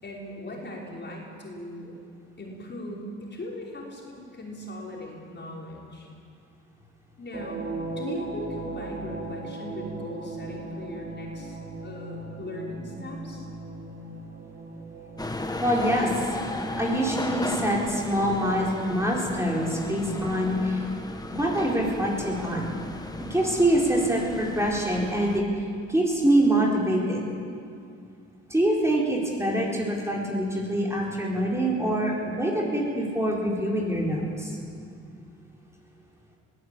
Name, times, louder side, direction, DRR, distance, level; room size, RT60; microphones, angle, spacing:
voice 1, 0.0-1.9 2.4-6.1 7.2-7.7 8.0-13.4, left 1 dB, 35° left, -3 dB, 5.5 m, -39 dB
sound 1, 7.3-17.6, right 2 dB, 35° right, 2.6 m, -38 dB
sound 2, 15.2-25.4, left 1 dB, 15° left, 1.6 m, -35 dB
voice 2, 15.6-16.1 16.8-20.8 21.3-22.7 23.3-25.4 25.9-27.3 28.5-34.6, right 1 dB, 10° right, -3 dB, 4.4 m, -25 dB
22.5 x 15.5 x 8.9 m, 2.4 s
cardioid pair, 90°, 30 cm